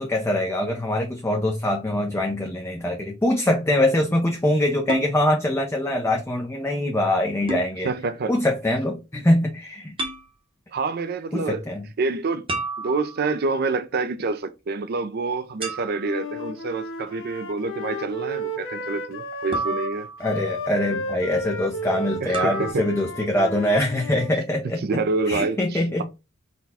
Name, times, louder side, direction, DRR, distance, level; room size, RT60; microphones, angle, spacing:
voice 1, 0.0-7.9 8.3-10.1 11.3-11.9 20.2-26.0, left 1 dB, 15° left, 0.5 m, -23 dB
sound 1, 4.9-5.1 7.5-7.7 10.0-10.3 12.5-13.4 15.6-16.2 19.5-20.4 22.3-22.7, right 3 dB, 30° right, 0.8 m, -30 dB
voice 2, 7.8-8.3 10.7-11.6 12.0-12.5 12.8-20.1 22.2-22.9 24.8-26.0, right 4 dB, 50° right, 0.4 m, -27 dB
Wind instrument woodwind instrument, 16.0-24.3, left 1 dB, 85° left, 0.9 m, -33 dB
4.1 x 2.2 x 4.1 m
head